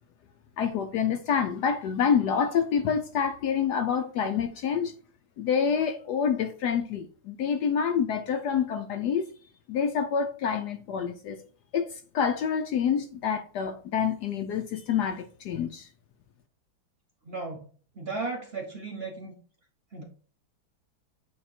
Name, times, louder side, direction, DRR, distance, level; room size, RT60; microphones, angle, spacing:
voice 1, 0.6-4.9 5.4-9.3 9.7-11.4 11.7-15.9, left 7 dB, 70° left, 1.0 m, -27 dB
voice 2, 17.2-17.6 18.0-19.4 19.9-20.0, right 3 dB, 45° right, 0.8 m, -35 dB
8.4 x 2.9 x 4.3 m
omnidirectional pair, 2.1 m